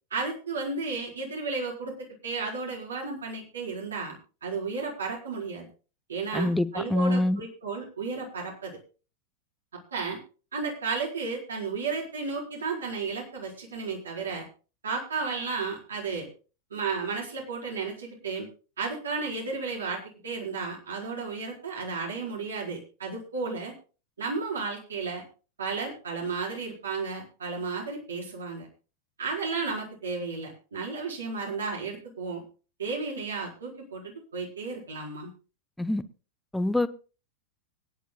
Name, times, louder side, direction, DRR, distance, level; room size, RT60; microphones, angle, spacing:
voice 1, 0.1-1.9 2.2-5.7 6.1-8.8 9.9-10.2 10.5-14.4 14.8-16.3 16.7-18.5 18.8-23.7 24.2-25.2 25.6-28.7 29.2-32.4 32.8-35.3, right 4 dB, 70° right, -1 dB, 4.6 m, -33 dB
voice 2, 6.3-7.4 35.8-36.0 36.5-36.9, left 1 dB, 5° left, 14 dB, 0.8 m, -25 dB
24.5 x 10.5 x 2.3 m, 0.34 s
figure-of-eight pair, 90°, 0 cm